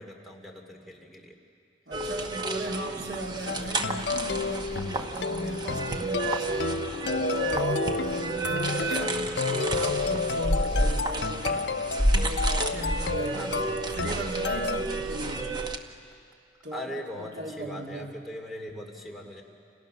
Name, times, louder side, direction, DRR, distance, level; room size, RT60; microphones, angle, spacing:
voice 1, 0.0-1.3 8.8-9.1 13.3-13.7 16.7-19.4, left 1 dB, ahead, 2 dB, 2.7 m, -40 dB
sound 1, 1.9-15.8, right 2 dB, 25° right, 1.0 m, -30 dB
voice 2, 1.9-6.8 7.3-11.8 12.1-15.6 16.6-16.9 17.2-18.2, right 1 dB, 75° right, 2 dB, 2.0 m, -37 dB
sound 2, 3.5-14.8, left 4 dB, 70° left, 0.5 m, -31 dB
29.0 x 28.0 x 6.5 m, 2.4 s
head